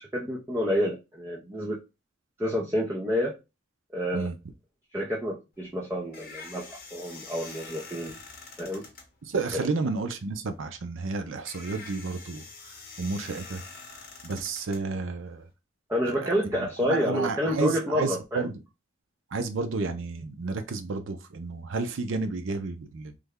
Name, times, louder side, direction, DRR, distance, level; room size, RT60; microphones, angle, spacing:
voice 1, 0.0-1.8 2.4-3.4 3.9-4.3 4.9-8.2 8.6-8.9 9.5-9.7 15.9-18.5, equal, 15° right, 0.5 m, -29 dB
sound 1, 5.5-15.5, left 4 dB, 45° left, 0.9 m, -46 dB
voice 2, 9.2-15.5 16.1-16.2 16.5-18.6 19.3-23.1, right 3 dB, 75° right, 0.5 m, -32 dB
3.3 x 2.1 x 3.5 m
head